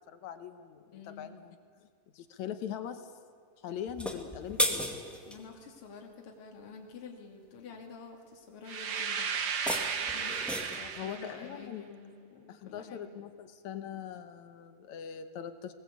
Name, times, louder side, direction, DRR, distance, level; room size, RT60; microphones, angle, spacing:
voice 1, 0.1-1.6 2.1-3.1 3.6-4.9 10.9-11.9 12.5-15.7, left 9 dB, 70° left, 9 dB, 2.1 m, -41 dB
voice 2, 0.9-1.4 3.8-4.0 5.2-9.3 10.1-13.1, left 5 dB, 40° left, 1 dB, 3.0 m, -49 dB
sound 1, 3.9-5.4 9.4-10.9, left 1 dB, ahead, 0.5 m, -34 dB
sound 2, 8.7-11.4, right 6 dB, 75° right, 1.0 m, -34 dB
20.5 x 20.0 x 8.3 m, 2.1 s
omnidirectional pair, 4.0 m